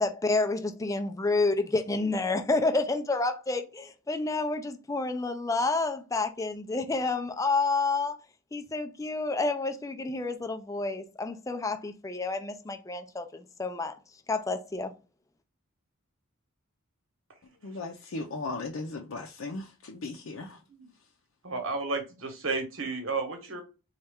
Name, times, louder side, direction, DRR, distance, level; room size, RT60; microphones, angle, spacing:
voice 1, 0.0-8.2 8.5-14.0 14.3-14.9, left 3 dB, 15° left, 0.4 m, -29 dB
voice 2, 17.6-20.6, left 3 dB, 70° left, 0.6 m, -37 dB
voice 3, 21.4-23.6, right 3 dB, 70° right, 1.1 m, -32 dB
4.2 x 2.3 x 3.5 m
head